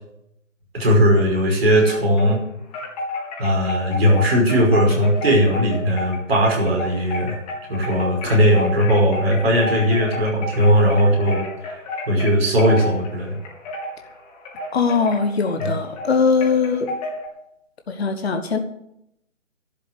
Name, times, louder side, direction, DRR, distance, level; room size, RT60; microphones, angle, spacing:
voice 1, 0.7-2.4 3.4-7.4 7.7-11.8 12.1-13.4 15.6-15.7, equal, 50° right, -1 dB, 5.6 m, -18 dB
Wind chime, 1.7-2.4 2.7-17.3, left 1 dB, 30° left, 4.0 m, -31 dB
voice 2, 14.7-16.9 17.9-18.6, left 5 dB, 55° left, 6 dB, 1.4 m, -20 dB
11.5 x 7.4 x 9.7 m, 0.79 s
figure-of-eight pair, 140°, 38 cm